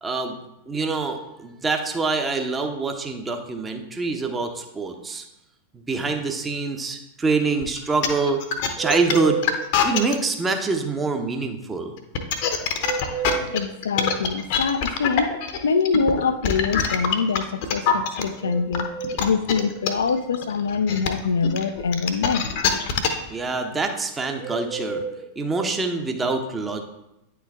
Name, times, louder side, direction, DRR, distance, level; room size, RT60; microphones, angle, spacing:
voice 1, 0.0-0.4 0.7-5.3 5.7-8.4 8.8-9.4 9.8-11.9 23.3-25.0 25.4-26.8, right 4 dB, 15° right, 4 dB, 0.8 m, -25 dB
sound 1, 7.6-10.1 12.0-18.2 18.7-23.3, left 7 dB, 50° left, 0.8 m, -24 dB
sound 2, 8.8-10.2 12.8-14.2 18.4-19.8 24.4-25.8, right 6 dB, 45° right, 1.4 m, -31 dB
voice 2, 13.4-15.4 15.6-18.9 19.2-22.4, left 5 dB, 70° left, 11 dB, 0.4 m, -24 dB
9.3 x 4.7 x 3.5 m, 0.88 s
figure-of-eight pair, 90°, 0 cm